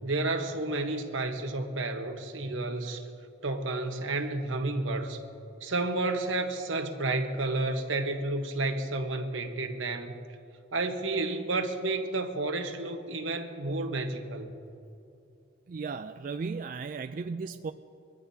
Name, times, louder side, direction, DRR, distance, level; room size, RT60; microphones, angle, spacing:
voice 1, 0.0-3.0 3.4-5.2 5.6-10.2 10.7-14.5, right 2 dB, 85° right, 5 dB, 1.2 m, -31 dB
voice 2, 15.7-17.7, right 4 dB, 45° right, 9 dB, 0.3 m, -35 dB
22.5 x 14.5 x 2.8 m, 2.7 s
head